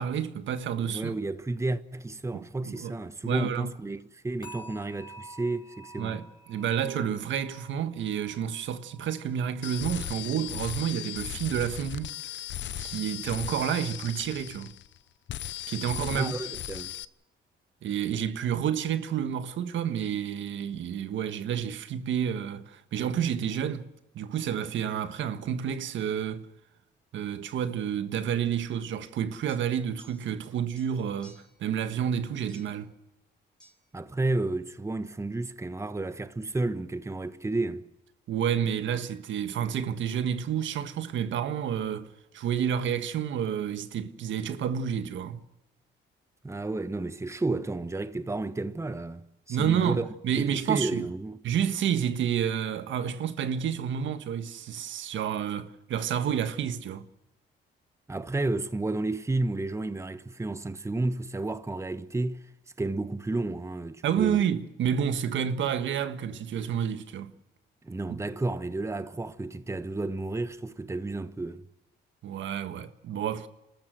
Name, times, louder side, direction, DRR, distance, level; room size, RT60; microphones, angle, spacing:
voice 1, 0.0-1.1 2.3-2.9 3.2-3.7 6.0-12.1 12.8-14.7 15.7-16.3 17.8-23.9 24.1-26.5 27.1-32.9 38.3-42.1 42.3-45.4 49.5-51.1 51.4-57.1 64.0-67.3 68.1-68.2 72.2-73.5, right 8 dB, 75° right, 1.5 m, -30 dB
voice 2, 0.8-6.2 16.1-16.9 33.9-37.9 46.4-50.1 50.3-51.4 58.1-62.5 62.8-64.4 67.8-71.7, right 2 dB, 15° right, 1.1 m, -32 dB
sound 1, 4.4-11.5 11.8-12.2 12.7-12.8, right 2 dB, 25° left, 5.4 m, -51 dB
sound 2, 9.6-15.0 15.3-17.1, left 12 dB, 65° left, 0.8 m, -37 dB
sound 3, 29.5-30.5 30.7-31.6 32.5-32.9 33.6-33.8, equal, 5° left, 5.6 m, -57 dB
29.5 x 13.5 x 7.8 m
cardioid pair, 90°, 20 cm